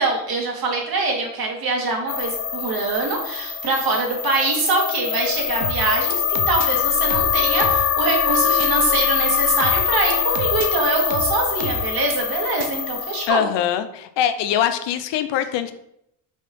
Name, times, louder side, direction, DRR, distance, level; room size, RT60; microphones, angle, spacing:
voice 1, 0.0-13.4, right 3 dB, 55° right, 0 dB, 2.2 m, -24 dB
sound 1, 2.1-13.3, left 8 dB, 35° left, 0.7 m, -23 dB
sound 2, 5.6-6.7 7.1-7.9 8.6-8.7 9.6-10.7 11.1-12.1 12.6-12.7, right 6 dB, 80° right, 0.9 m, -30 dB
voice 2, 13.3-15.7, left 10 dB, 70° left, 10 dB, 0.7 m, -22 dB
5.6 x 4.1 x 4.4 m, 0.77 s
supercardioid pair, 85°, 44 cm